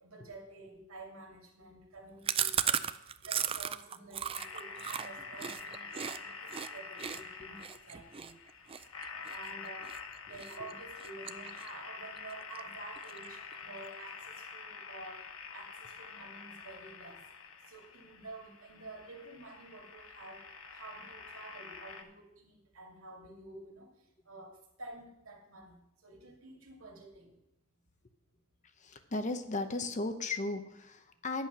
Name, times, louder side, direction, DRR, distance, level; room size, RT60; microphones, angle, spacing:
voice 1, 0.0-2.9 3.2-8.3 9.3-9.9 10.3-15.2 15.5-17.2 17.7-20.4 20.7-23.9 24.3-27.3, right 2 dB, 70° right, 1 dB, 2.4 m, -50 dB
Chewing mastication, 2.3-6.2 6.5-6.7 7.0-10.0 10.4-10.7 11.0-11.9 12.2-12.3 12.6-12.7 13.0-13.5, right 9 dB, 25° right, 0.3 m, -35 dB
sound 1, 4.3-22.0, left 5 dB, 70° left, 1.2 m, -47 dB
voice 2, 28.8-31.5, left 2 dB, 35° left, 8 dB, 0.8 m, -36 dB
10.5 x 8.4 x 6.1 m, 0.87 s
head